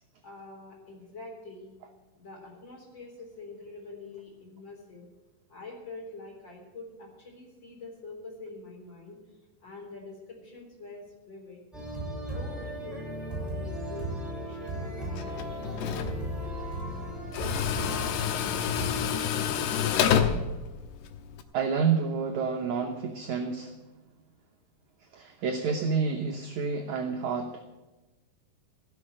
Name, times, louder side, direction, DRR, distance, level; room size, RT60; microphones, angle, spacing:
voice 1, 0.2-1.7 2.2-5.1 5.5-9.2 9.6-11.6 12.3-16.1, left 3 dB, 30° left, -1 dB, 4.1 m, -45 dB
sound 1, 11.7-18.9, right 1 dB, ahead, 6.2 m, -36 dB
Tools, 15.2-21.4, left 8 dB, 85° left, 3.0 m, -29 dB
voice 2, 21.5-23.7 25.1-27.6, right 5 dB, 70° right, 4 dB, 1.8 m, -29 dB
16.5 x 7.1 x 10.0 m, 1.1 s
omnidirectional pair, 4.5 m